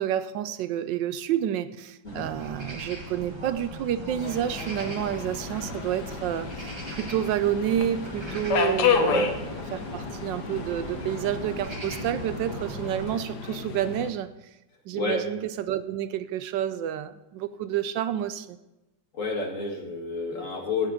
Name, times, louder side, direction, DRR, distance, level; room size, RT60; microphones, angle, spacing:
voice 1, 0.0-9.4 9.7-14.3 14.9-18.6, right 10 dB, 80° right, 13 dB, 1.3 m, -29 dB
sound 1, 2.0-13.1, right 1 dB, 15° right, 1.2 m, -39 dB
Subway metro underground, 4.2-14.1, left 6 dB, 65° left, 1.6 m, -31 dB
voice 2, 14.9-15.2 19.1-20.9, left 3 dB, 45° left, 2 dB, 1.9 m, -29 dB
17.0 x 6.1 x 5.1 m, 0.97 s
omnidirectional pair, 2.0 m